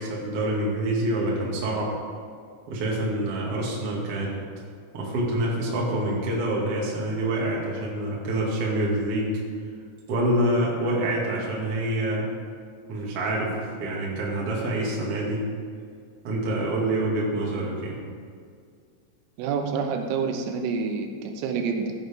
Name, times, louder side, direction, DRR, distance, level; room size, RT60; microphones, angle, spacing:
voice 1, 0.0-1.9 2.7-4.3 4.9-9.3 10.1-12.3 12.9-15.4 16.2-18.0, right 1 dB, 45° right, -4 dB, 2.0 m, -26 dB
voice 2, 19.4-22.0, right 5 dB, 85° right, 5 dB, 3.4 m, -28 dB
15.0 x 9.2 x 3.6 m, 2.1 s
omnidirectional pair, 5.9 m